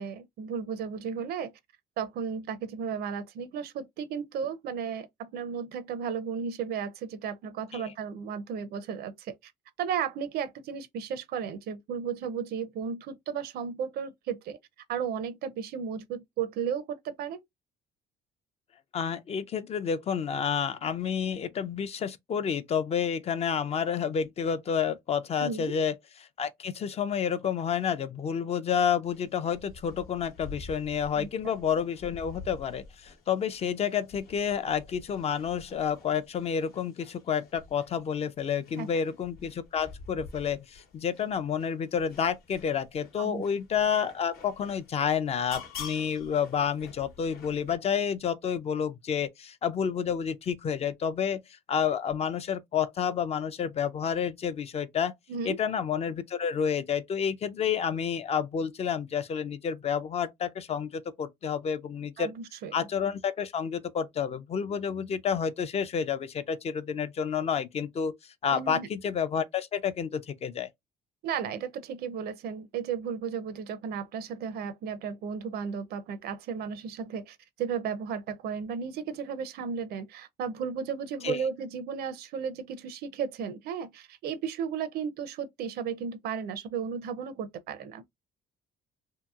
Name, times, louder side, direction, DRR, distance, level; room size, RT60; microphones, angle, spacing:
voice 1, 0.0-1.5 2.0-9.5 9.8-14.6 14.9-17.4 25.4-25.7 31.2-31.3 38.7-38.9 43.2-43.4 55.3-55.6 62.2-62.7 68.5-68.9 71.2-88.1, right 7 dB, 70° right, 0.5 m, -34 dB
voice 2, 18.9-25.9 26.4-51.4 51.7-55.1 55.4-62.3 62.7-68.1 68.4-70.7 81.2-81.4, left 7 dB, 40° left, 0.4 m, -29 dB
sound 1, 29.1-47.8, left 5 dB, 65° left, 1.0 m, -48 dB
2.8 x 2.7 x 2.3 m
cardioid pair, 110°, 17 cm